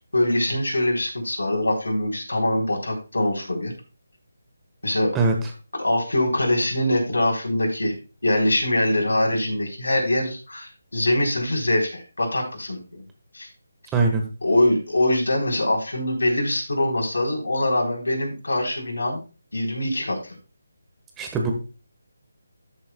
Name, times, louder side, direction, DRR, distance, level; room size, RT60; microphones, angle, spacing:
voice 1, 0.1-3.7 4.8-5.1 5.8-8.0 8.2-13.0 13.3-13.5 14.4-19.2 19.5-20.3, left 1 dB, 90° left, 0 dB, 3.5 m, -23 dB
voice 2, 13.9-14.2 21.2-21.5, right 3 dB, 10° right, 2 dB, 1.2 m, -21 dB
13.0 x 6.7 x 2.2 m, 0.33 s
figure-of-eight pair, 165°, 0 cm